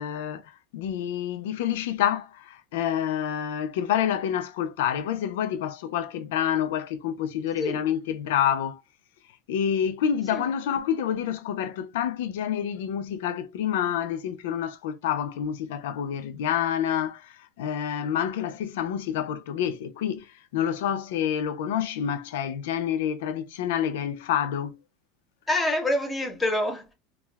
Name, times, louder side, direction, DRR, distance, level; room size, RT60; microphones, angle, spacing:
voice 1, 0.0-8.8 9.5-24.8, left 9 dB, 80° left, 0.4 m, -28 dB
voice 2, 25.5-26.9, left 1 dB, 5° left, 0.7 m, -26 dB
2.3 x 2.2 x 3.3 m
supercardioid pair, 170°, 0 cm